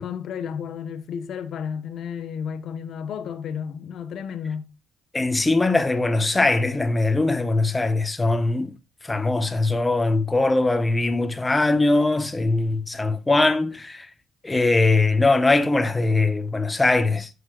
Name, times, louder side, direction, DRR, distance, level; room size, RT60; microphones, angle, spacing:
voice 1, 0.0-4.7, left 7 dB, 70° left, 1.2 m, -32 dB
voice 2, 5.1-8.7 9.0-14.1 14.4-17.3, left 2 dB, 20° left, 1.2 m, -21 dB
14.5 x 6.6 x 2.5 m
cardioid pair, 90°, 0 cm